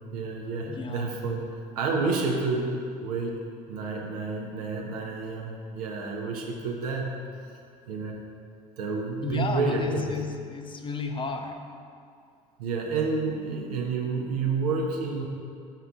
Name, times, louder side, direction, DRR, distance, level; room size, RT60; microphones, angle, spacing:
voice 1, 0.0-2.7 3.0-3.4 3.7-7.1 7.9-8.2 8.8-10.1 12.6-15.3, right 4 dB, 85° right, 0 dB, 0.8 m, -29 dB
voice 2, 0.7-1.2 9.2-11.7, left 4 dB, 25° left, 5 dB, 0.6 m, -33 dB
4.6 x 4.5 x 5.1 m, 2.3 s
hypercardioid pair, 70°, 19 cm